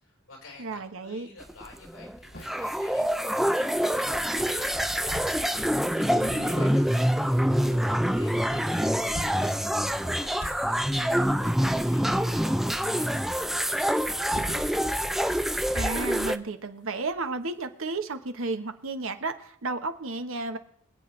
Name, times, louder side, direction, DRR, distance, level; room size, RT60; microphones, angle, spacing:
voice 1, 0.0-9.6 9.9-14.7, left 2 dB, 75° left, 0 dB, 5.0 m, -50 dB
voice 2, 0.6-1.3 6.2-6.7 15.6-20.6, right 3 dB, 65° right, 8 dB, 1.1 m, -33 dB
sound 1, 1.2-1.3 1.7-4.7 5.0-6.7 7.3-7.4 7.6-7.7 8.5-8.6 8.8-11.2 13.7-15.2 15.5-17.8 18.8-18.9 19.9-20.0, equal, 55° left, 3.5 m, -45 dB
sound 2, 1.4-16.4, equal, ahead, 0.4 m, -26 dB
25.0 x 8.7 x 3.2 m, 0.69 s
head